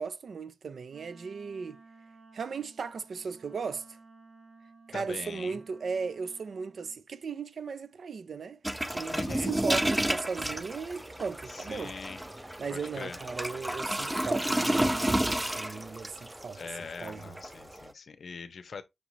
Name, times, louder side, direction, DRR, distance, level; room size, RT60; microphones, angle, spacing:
voice 1, 0.0-1.8 2.3-4.0 4.9-8.6 8.9-11.9 12.6-17.4, right 5 dB, 85° right, 0.4 m, -37 dB
Wind instrument woodwind instrument, 0.9-7.0, right 3 dB, 65° right, 0.9 m, -55 dB
voice 2, 4.9-5.6 9.1-9.5 11.5-12.2 12.7-13.2 16.6-18.8, left 5 dB, 75° left, 0.5 m, -42 dB
sound 1, 8.6-17.9, right 1 dB, 10° right, 0.3 m, -31 dB
5.9 x 2.5 x 3.0 m
wide cardioid pair, 145°, 0 cm